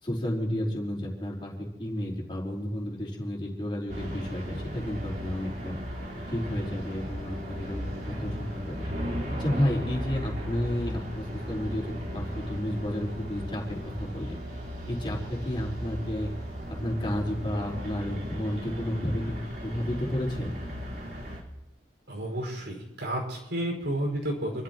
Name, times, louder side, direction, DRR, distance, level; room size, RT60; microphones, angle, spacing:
voice 1, 0.0-5.8 6.3-8.8 9.4-14.4 14.9-16.3 16.7-19.2 19.6-20.5, equal, 25° left, -3 dB, 4.3 m, -31 dB
sound 1, 3.9-21.4, equal, 55° right, 4.3 m, -36 dB
voice 2, 22.1-24.6, right 1 dB, 75° right, 0 dB, 5.4 m, -31 dB
29.0 x 13.5 x 3.0 m, 0.99 s
head